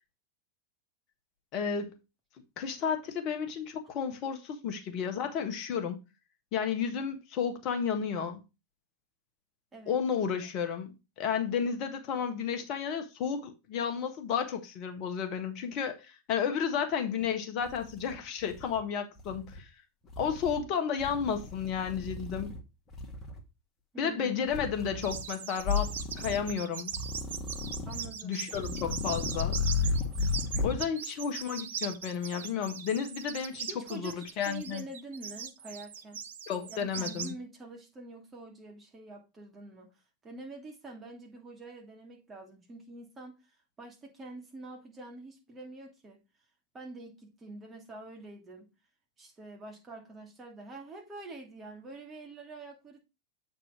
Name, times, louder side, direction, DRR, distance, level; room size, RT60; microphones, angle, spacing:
voice 1, 1.5-1.9 2.6-6.0 6.5-8.4 9.9-19.7 20.2-22.5 24.0-26.9 28.2-29.6 30.6-34.8 36.5-37.3, left 7 dB, 40° left, 1.4 m, -32 dB
sound 1, 17.2-17.3 17.6-18.8 19.2-19.6 20.1-20.6 21.0-22.6 22.9-23.4 24.5-25.2 25.6-26.5 26.9-28.1 28.5-30.8, left 4 dB, 20° left, 1.9 m, -34 dB
voice 2, 23.9-24.5 27.8-28.4 33.7-36.2 36.7-46.2 46.7-48.7 49.2-53.0, right 2 dB, 20° right, 2.8 m, -46 dB
sound 2, 25.0-37.3, right 7 dB, 60° right, 0.8 m, -40 dB
7.9 x 4.3 x 4.4 m
figure-of-eight pair, 90°, 0 cm